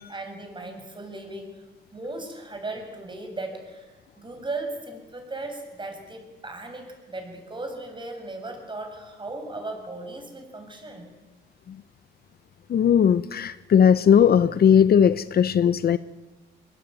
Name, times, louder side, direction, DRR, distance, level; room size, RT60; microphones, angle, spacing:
voice 1, 0.0-11.1, right 2 dB, 25° right, 6.8 m, -37 dB
voice 2, 12.7-16.0, left 8 dB, 50° left, 0.8 m, -18 dB
23.0 x 20.5 x 9.2 m
cardioid pair, 90°, 20 cm